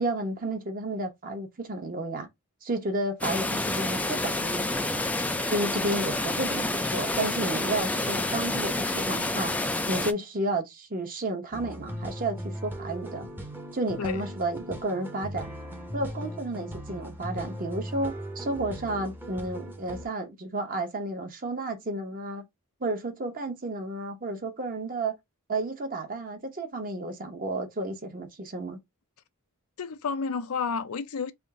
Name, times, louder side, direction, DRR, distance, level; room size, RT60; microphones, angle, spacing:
voice 1, 0.0-2.3 2.6-5.0 5.4-9.5 9.9-13.3 13.7-15.5 15.9-22.4 22.8-25.2 25.5-28.8, right 2 dB, 40° right, 0.9 m, -32 dB
sound 1, 3.2-10.1, left 2 dB, 5° left, 0.3 m, -28 dB
sound 2, 11.5-20.1, equal, 10° right, 0.8 m, -38 dB
voice 2, 29.8-31.3, left 5 dB, 75° left, 0.5 m, -31 dB
3.5 x 2.5 x 3.6 m
head